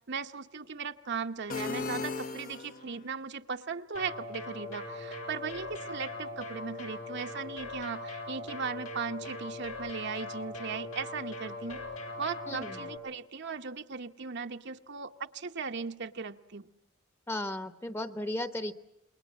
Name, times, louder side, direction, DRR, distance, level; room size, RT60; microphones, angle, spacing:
voice 1, 0.1-11.8 12.2-16.7, right 5 dB, 55° right, 6 dB, 1.0 m, -38 dB
sound 1, 1.5-3.1, left 4 dB, 40° left, 0.9 m, -36 dB
sound 2, 3.9-13.0, left 2 dB, 85° left, 6.8 m, -40 dB
voice 2, 12.5-12.8 17.3-18.7, left 1 dB, 10° left, 11 dB, 1.0 m, -35 dB
28.5 x 21.5 x 7.4 m, 0.87 s
head